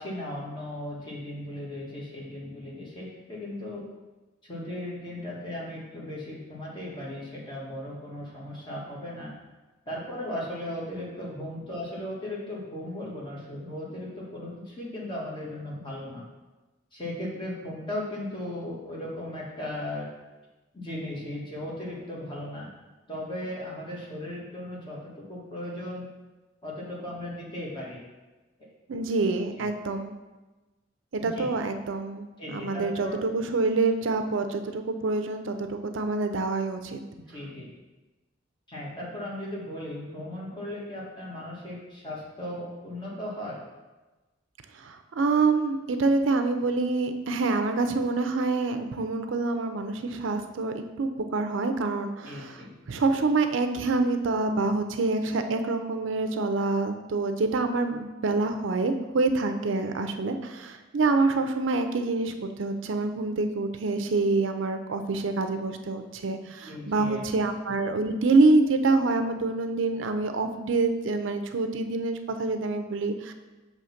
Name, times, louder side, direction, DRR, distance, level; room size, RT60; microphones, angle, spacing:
voice 1, 0.0-3.9 4.4-9.3 9.9-16.2 16.9-20.1 20.7-22.7 23.1-26.1 26.6-28.0 29.6-29.7 31.2-31.5 32.4-33.2 37.1-37.7 38.7-43.6 52.2-52.7 66.6-67.2, left 1 dB, 25° left, -5 dB, 1.6 m, -37 dB
voice 2, 28.9-30.2 31.1-37.0 44.7-52.6 52.9-73.3, right 3 dB, 90° right, 7 dB, 0.5 m, -26 dB
6.3 x 3.1 x 5.7 m, 1.2 s
head